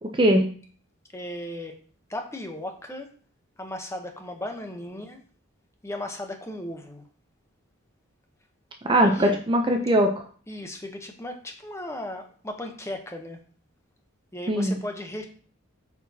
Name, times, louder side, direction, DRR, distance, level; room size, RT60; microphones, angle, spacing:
voice 1, 0.0-0.5 8.8-10.2 14.5-14.8, right 1 dB, 25° right, 4 dB, 0.5 m, -21 dB
voice 2, 1.1-1.7 2.1-3.1 3.6-5.2 5.8-7.0 8.9-9.4 10.5-13.4 14.3-15.3, left 1 dB, 15° left, 4 dB, 0.8 m, -36 dB
8.6 x 4.6 x 2.7 m, 0.43 s
head